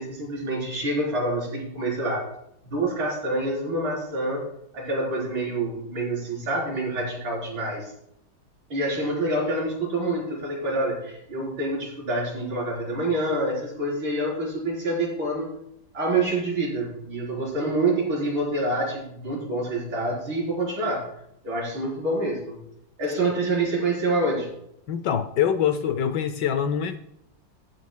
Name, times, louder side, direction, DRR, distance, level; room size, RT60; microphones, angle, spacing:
voice 1, 0.0-2.3 2.6-4.5 4.7-7.9 8.7-15.5 15.9-21.1 21.4-22.6 23.0-24.5, right 2 dB, 80° right, -3 dB, 4.8 m, -27 dB
voice 2, 24.9-27.0, left 8 dB, 70° left, 10 dB, 1.1 m, -24 dB
15.0 x 9.4 x 2.2 m, 0.77 s
omnidirectional pair, 2.2 m